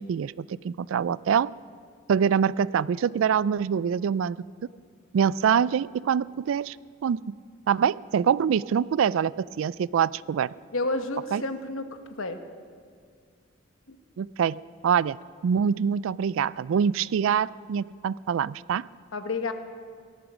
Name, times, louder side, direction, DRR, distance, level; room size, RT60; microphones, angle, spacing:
voice 1, 0.0-1.5 2.1-4.4 5.1-6.8 7.0-7.3 7.7-10.5 11.3-11.4 14.2-15.2 15.4-18.9, right 7 dB, 70° right, 21 dB, 0.3 m, -25 dB
voice 2, 10.7-11.9 12.2-12.4 13.9-14.0 19.1-19.5, left 2 dB, 75° left, 8 dB, 1.1 m, -30 dB
18.0 x 13.0 x 6.1 m, 2.1 s
head